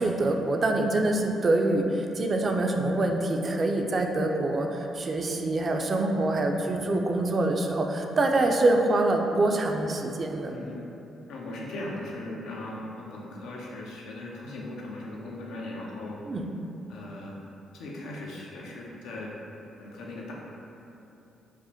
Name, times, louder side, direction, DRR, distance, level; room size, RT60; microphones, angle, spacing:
voice 1, 0.0-10.5 16.2-16.5, right 2 dB, 40° right, 3 dB, 0.3 m, -25 dB
voice 2, 10.4-10.8 11.3-16.2 16.9-17.3 17.7-19.3 19.8-20.3, left 2 dB, 85° left, -3 dB, 0.5 m, -38 dB
4.8 x 2.0 x 2.8 m, 3.0 s
cardioid pair, 90°, 0 cm